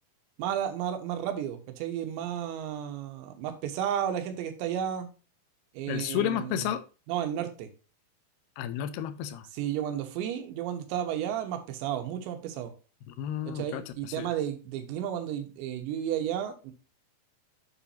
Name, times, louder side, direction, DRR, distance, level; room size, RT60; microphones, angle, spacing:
voice 1, 0.4-5.1 5.7-6.6 7.1-7.7 9.5-12.7 13.5-16.7, right 10 dB, 90° right, 7 dB, 3.4 m, -32 dB
voice 2, 5.9-6.8 8.6-9.5 13.1-14.3, left 10 dB, 80° left, 12 dB, 2.6 m, -32 dB
8.2 x 7.2 x 2.7 m, 0.33 s
omnidirectional pair, 5.0 m